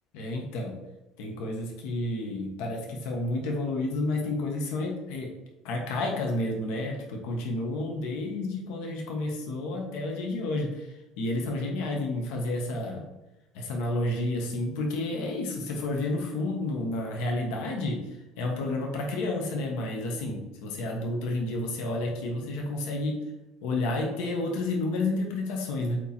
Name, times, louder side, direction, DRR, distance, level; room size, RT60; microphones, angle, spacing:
voice 1, 0.1-0.8 1.2-5.3 5.6-13.0 13.5-18.0 18.4-23.2 23.6-26.0, left 2 dB, 85° left, 1 dB, 1.2 m, -30 dB
8.1 x 3.1 x 4.3 m, 0.96 s
cardioid pair, 155°, 0 cm